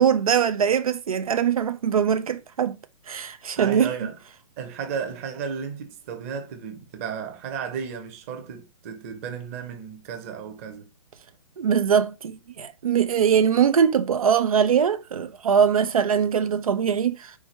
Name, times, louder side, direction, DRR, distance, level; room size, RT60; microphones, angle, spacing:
voice 1, 0.0-2.8 3.1-3.9 11.6-17.3, right 7 dB, 75° right, 0.8 m, -22 dB
voice 2, 3.6-4.2 4.6-10.9, right 7 dB, 25° right, 1.0 m, -34 dB
4.9 x 4.7 x 4.3 m
hypercardioid pair, 170°, 18 cm